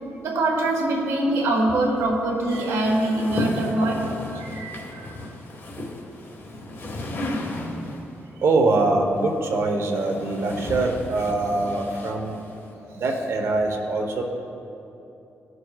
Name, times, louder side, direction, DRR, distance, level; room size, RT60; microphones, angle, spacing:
voice 1, 0.2-4.0, right 1 dB, 85° right, 0 dB, 1.7 m, -23 dB
sound 1, 2.5-8.1 9.2-12.7, left 1 dB, 50° left, 1.7 m, -34 dB
voice 2, 4.3-4.9 8.4-12.4 12.9-14.2, right 2 dB, 65° right, 3 dB, 1.1 m, -24 dB
16.0 x 6.4 x 2.4 m, 2.9 s
cardioid pair, 85°, 5 cm